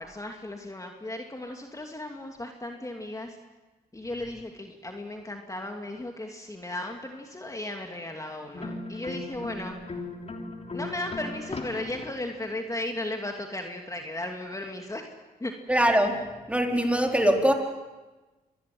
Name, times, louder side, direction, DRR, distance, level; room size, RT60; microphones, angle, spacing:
voice 1, 0.0-3.4 3.9-9.8 10.7-15.1 15.4-15.5, left 1 dB, 20° left, 3 dB, 2.8 m, -36 dB
sound 1, 8.5-12.5, left 2 dB, 40° left, 3.2 m, -37 dB
voice 2, 15.7-17.5, equal, 10° right, 2 dB, 4.3 m, -23 dB
25.0 x 20.0 x 7.9 m, 1.2 s
supercardioid pair, 55°, 16 cm